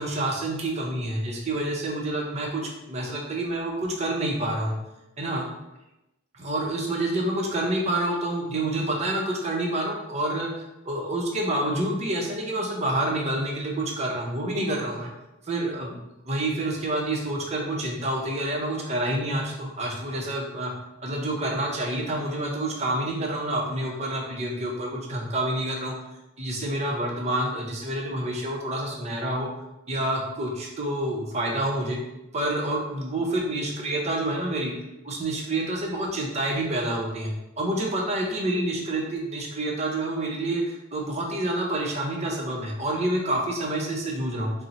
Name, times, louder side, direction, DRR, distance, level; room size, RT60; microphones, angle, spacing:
voice 1, 0.0-4.7 5.2-5.4 6.3-10.5 10.9-15.1 15.4-16.0 16.3-20.7 21.0-25.9 26.4-29.5 29.9-32.0 32.3-34.7 35.0-37.3 37.6-44.5, right 1 dB, 30° right, -1 dB, 0.7 m, -28 dB
4.3 x 2.0 x 3.9 m, 0.94 s
head